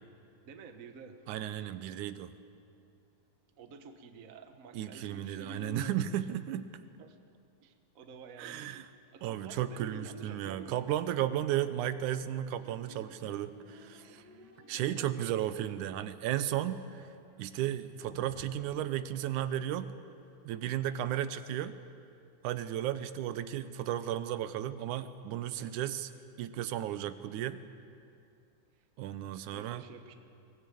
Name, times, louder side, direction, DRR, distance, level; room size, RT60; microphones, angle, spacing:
voice 1, 0.4-1.2 3.6-6.1 7.0-7.2 7.6-8.7 9.1-10.9 14.4-15.4 25.5-25.8 29.3-30.1, right 4 dB, 65° right, 6 dB, 0.8 m, -49 dB
voice 2, 1.3-2.3 4.7-6.7 8.4-8.9 9.2-14.2 14.7-17.0 17.4-19.9 20.5-21.8 22.4-26.1 26.4-27.6 29.0-29.8, right 11 dB, 85° right, 12 dB, 2.3 m, -34 dB
sound 1, 12.5-20.0, left 1 dB, 85° left, 5.7 m, -57 dB
23.0 x 16.5 x 8.5 m, 2.5 s
omnidirectional pair, 3.4 m